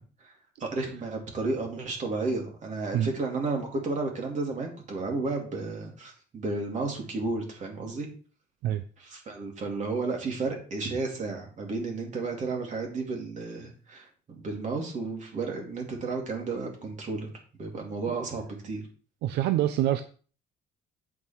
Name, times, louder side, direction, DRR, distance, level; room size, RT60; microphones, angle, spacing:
voice 1, 0.6-8.1 9.0-17.3 17.6-18.8, right 3 dB, 45° right, 1 dB, 3.3 m, -32 dB
voice 2, 19.2-20.0, right 12 dB, 80° right, 10 dB, 0.6 m, -26 dB
8.6 x 5.7 x 4.7 m, 0.39 s
cardioid pair, 110°, 17 cm